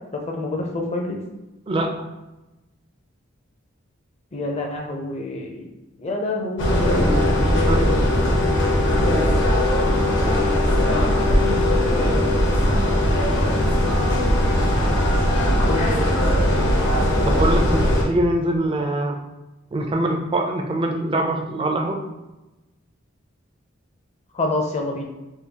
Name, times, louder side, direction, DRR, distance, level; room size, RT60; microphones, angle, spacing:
voice 1, 0.3-1.2 4.3-5.7 6.0-7.2 11.1-14.0 14.6-14.9 15.6-16.1 24.3-25.0, left 2 dB, 35° left, 1 dB, 0.5 m, -29 dB
sound 1, 6.6-18.0, left 1 dB, 65° left, 0.8 m, -19 dB
voice 2, 7.5-7.9 17.2-19.2 19.7-22.0, right 1 dB, 25° right, 3 dB, 0.4 m, -23 dB
3.6 x 2.3 x 2.8 m, 1.0 s
head